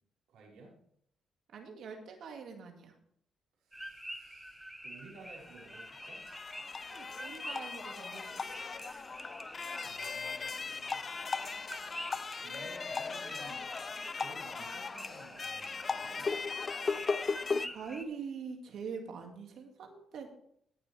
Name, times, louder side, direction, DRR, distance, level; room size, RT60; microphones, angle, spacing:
voice 1, 0.3-0.8 3.6-6.2 9.8-11.0 12.4-13.7 14.1-16.4, right 3 dB, 85° right, -4 dB, 4.7 m, -55 dB
voice 2, 1.5-2.9 6.9-8.6 17.0-20.3, right 5 dB, 70° right, 3 dB, 2.1 m, -44 dB
sound 1, 3.7-18.1, right 1 dB, 5° right, 1.2 m, -48 dB
sound 2, 5.3-17.7, left 4 dB, 35° left, 0.5 m, -38 dB
18.5 x 6.9 x 3.4 m, 0.67 s
cardioid pair, 90°, 0 cm